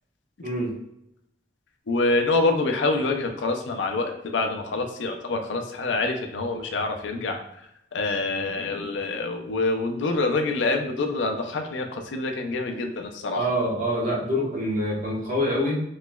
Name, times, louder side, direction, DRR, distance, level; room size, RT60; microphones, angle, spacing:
voice 1, 1.9-7.4 7.9-13.4, left 3 dB, 75° left, 4 dB, 0.5 m, -26 dB
voice 2, 13.3-15.8, equal, 45° right, -5 dB, 1.0 m, -25 dB
3.1 x 3.0 x 2.2 m, 0.78 s
head